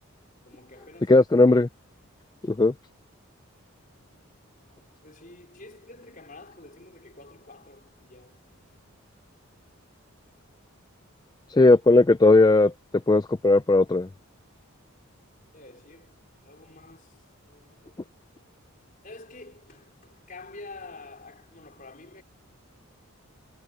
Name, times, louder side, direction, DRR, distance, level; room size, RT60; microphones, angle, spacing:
voice 1, 0.4-1.2 5.0-8.4 15.5-18.5 19.0-22.2, left 3 dB, 40° left, 4.5 m, -48 dB
voice 2, 1.1-1.7 2.5-2.7 11.5-12.7 13.1-14.1, left 2 dB, 20° left, 0.3 m, -17 dB
head